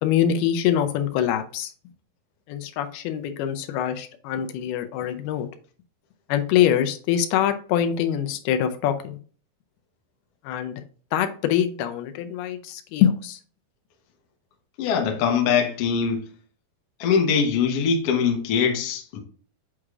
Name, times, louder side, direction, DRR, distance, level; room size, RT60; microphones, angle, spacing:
voice 1, 0.0-1.7 2.5-5.5 6.3-9.2 10.4-10.8 11.1-13.4, left 10 dB, 90° left, 2.6 m, -24 dB
voice 2, 14.8-16.3 17.0-19.2, left 6 dB, 70° left, 1.5 m, -22 dB
8.6 x 4.8 x 2.4 m
omnidirectional pair, 4.3 m